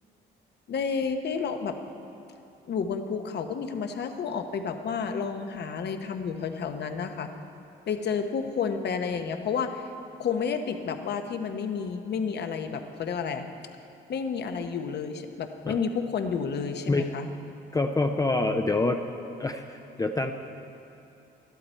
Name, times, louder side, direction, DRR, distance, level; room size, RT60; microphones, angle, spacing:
voice 1, 0.7-1.8 2.7-7.3 7.9-9.8 10.2-13.5 14.1-17.3, left 6 dB, 55° left, 7 dB, 0.9 m, -30 dB
voice 2, 17.7-19.0 19.4-20.3, left 2 dB, 15° left, 4 dB, 0.5 m, -26 dB
12.5 x 12.0 x 4.4 m, 2.8 s
cardioid pair, 90°, 20 cm